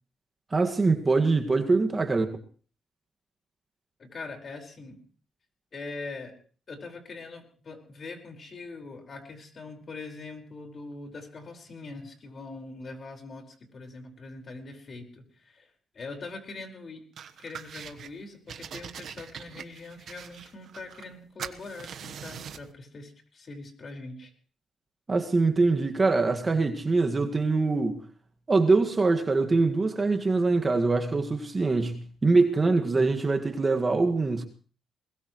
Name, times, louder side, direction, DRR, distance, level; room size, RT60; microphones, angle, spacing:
voice 1, 0.5-2.3 25.1-28.0 28.5-34.5, right 3 dB, 30° right, 1.9 m, -23 dB
voice 2, 4.0-5.0 5.7-6.3 6.7-15.7 15.9-17.0 17.4-24.3, left 3 dB, 45° left, 5.1 m, -42 dB
sound 1, 17.2-18.1 18.5-21.1 21.4-22.7, right 8 dB, 65° right, 1.2 m, -42 dB
21.0 x 21.0 x 3.2 m
cardioid pair, 90°, 0 cm